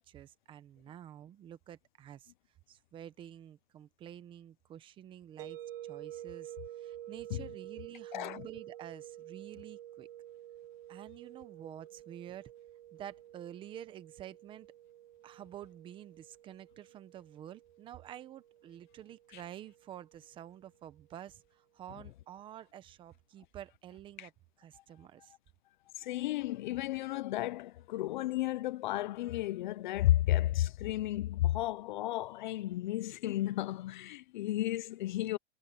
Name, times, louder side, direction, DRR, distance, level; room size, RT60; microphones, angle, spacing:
voice 1, 0.1-2.3 2.7-10.1 10.9-12.5 12.9-14.7 15.2-24.3 24.6-25.3, right 11 dB, 15° right, 0.9 m, -49 dB
sound 1, 5.4-20.3, right 12 dB, 60° right, 1.7 m, -50 dB
voice 2, 8.1-8.5 19.3-19.4 24.2-24.3 26.0-35.4, left 15 dB, 45° left, 0.6 m, -33 dB
supercardioid pair, 165°, 32 cm